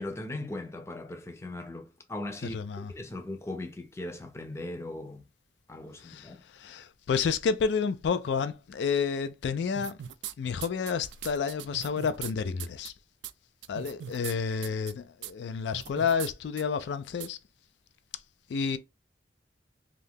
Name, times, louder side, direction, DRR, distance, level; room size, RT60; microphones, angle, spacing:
voice 1, 0.0-5.2 5.7-6.4, left 2 dB, 15° left, 0.4 m, -39 dB
voice 2, 2.4-2.9 6.0-10.0 10.4-12.9 13.7-17.4 18.5-18.8, left 6 dB, 80° left, 0.3 m, -30 dB
sound 1, 9.8-10.3 10.6-12.3 12.6-12.9 13.2-13.3 13.6-14.3 14.6-14.9 15.2-15.3 15.7-16.3 16.6-16.7 17.2-17.3, right 10 dB, 85° right, 0.3 m, -40 dB
2.7 x 2.4 x 3.5 m
head